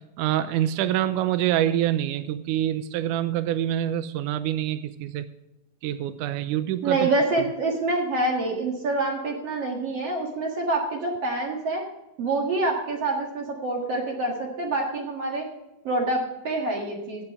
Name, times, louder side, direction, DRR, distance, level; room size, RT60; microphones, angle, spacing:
voice 1, 0.2-5.2 5.8-7.1, right 12 dB, 85° right, 12 dB, 1.8 m, -26 dB
voice 2, 6.8-11.8 12.2-15.5 15.8-17.2, right 2 dB, 50° right, 0 dB, 2.3 m, -26 dB
14.0 x 8.9 x 3.6 m, 0.96 s
omnidirectional pair, 4.3 m